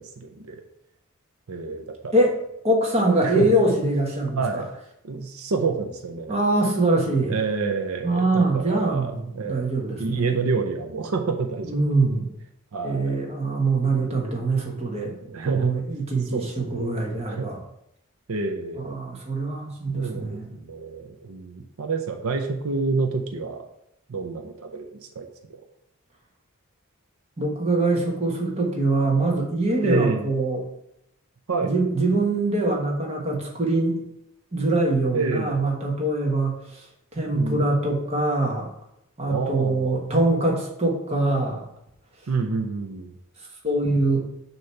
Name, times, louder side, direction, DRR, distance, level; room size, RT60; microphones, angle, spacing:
voice 1, 0.2-0.6 1.5-2.2 3.2-3.5 4.3-4.7 5.0-6.3 7.3-9.7 10.0-11.8 12.7-13.2 15.3-15.8 16.3-17.0 17.3-17.5 18.3-18.9 19.9-23.7 24.1-25.6 29.8-30.3 31.5-31.7 35.1-35.6 37.3-37.7 39.3-40.0 42.3-43.1, right 4 dB, 85° right, 5 dB, 0.6 m, -28 dB
voice 2, 2.6-4.6 6.3-7.4 8.0-10.4 11.6-12.3 12.8-15.2 15.4-17.6 18.8-20.5 27.4-30.6 31.6-34.0 34.5-36.9 37.1-38.7 39.2-41.6 43.6-44.2, right 2 dB, 30° right, -1 dB, 1.2 m, -23 dB
6.4 x 3.0 x 5.7 m, 0.77 s
head